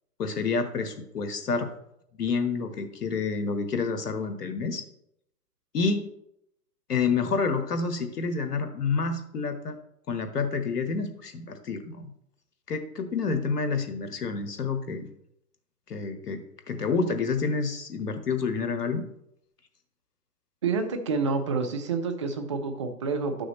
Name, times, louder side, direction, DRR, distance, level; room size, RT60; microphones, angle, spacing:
voice 1, 0.2-1.7 2.2-4.8 5.7-6.1 6.9-9.8 10.1-12.1 12.7-15.1 15.9-19.1, left 4 dB, 75° left, 7 dB, 1.3 m, -28 dB
voice 2, 20.6-23.5, right 4 dB, 20° right, 6 dB, 0.4 m, -28 dB
12.0 x 6.3 x 3.1 m, 0.77 s
figure-of-eight pair, 125°, 47 cm